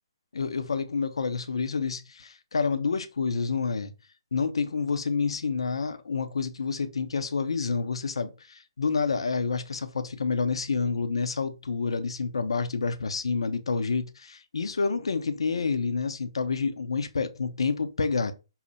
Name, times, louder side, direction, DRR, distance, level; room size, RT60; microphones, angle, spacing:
voice 1, 0.3-3.9 4.3-18.3, left 4 dB, 75° left, 0.5 m, -28 dB
5.5 x 2.1 x 4.0 m
figure-of-eight pair, 135°, 3 cm